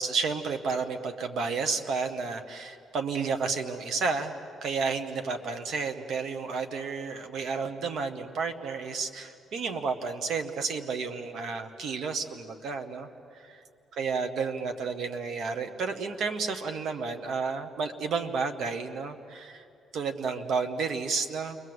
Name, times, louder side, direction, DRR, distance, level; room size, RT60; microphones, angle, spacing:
voice 1, 0.0-13.6 13.9-19.6 19.9-21.6, right 4 dB, 70° right, 7 dB, 1.8 m, -31 dB
29.5 x 22.5 x 8.1 m, 2.6 s
cardioid pair, 90°, 0 cm